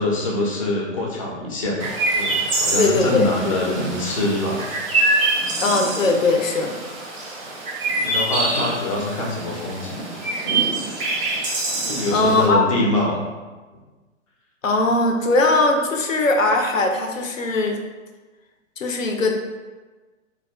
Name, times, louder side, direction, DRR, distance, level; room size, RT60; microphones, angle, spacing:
voice 1, 0.0-4.7 7.9-10.0 11.9-13.2, left 1 dB, 30° left, -1 dB, 0.4 m, -24 dB
Chirp tweet, 1.8-12.5, right 2 dB, 25° right, 0.4 m, -25 dB
voice 2, 2.8-3.8 5.6-6.8 12.1-12.6 14.6-17.8 18.8-19.3, left 2 dB, 85° left, 3 dB, 0.6 m, -20 dB
2.3 x 2.3 x 3.3 m, 1.3 s
figure-of-eight pair, 120°, 38 cm